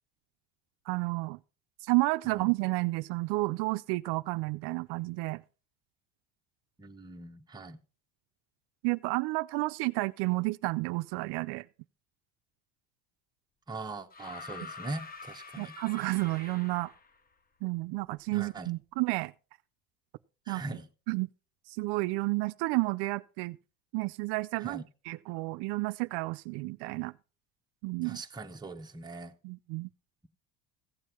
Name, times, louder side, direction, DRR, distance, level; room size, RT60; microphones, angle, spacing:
voice 1, 0.9-1.4 1.8-5.4 8.8-11.7 15.6-16.9 17.6-19.3 20.5-20.6 21.1-21.3 21.7-23.6 23.9-27.1 27.8-28.2 29.4-29.9, right 23 dB, 65° right, 0.6 m, -31 dB
voice 2, 6.8-7.8 13.7-15.7 18.3-18.7 20.5-20.9 24.6-24.9 28.0-29.3, right 2 dB, 10° right, 0.9 m, -41 dB
sound 1, 14.1-17.2 18.4-18.5, left 4 dB, 20° left, 0.7 m, -46 dB
15.5 x 7.4 x 4.4 m
cardioid pair, 125°, 45 cm